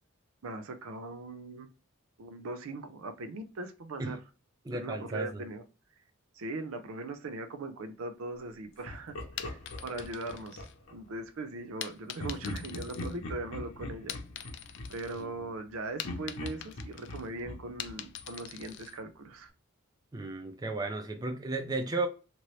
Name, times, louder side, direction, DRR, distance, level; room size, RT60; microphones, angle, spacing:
voice 1, 0.4-1.7 2.2-4.2 4.7-5.6 6.3-14.2 14.9-19.5, right 2 dB, 80° right, 0.5 m, -40 dB
voice 2, 4.6-5.5 20.1-22.1, right 2 dB, 20° right, 0.4 m, -34 dB
Laughter, 8.8-11.0 12.2-15.7 16.0-18.8, left 2 dB, 80° left, 0.7 m, -42 dB
sound 1, 9.4-11.2 11.8-13.6 13.9-15.2 15.6-19.0, left 10 dB, 55° left, 0.3 m, -44 dB
3.0 x 2.6 x 3.1 m
head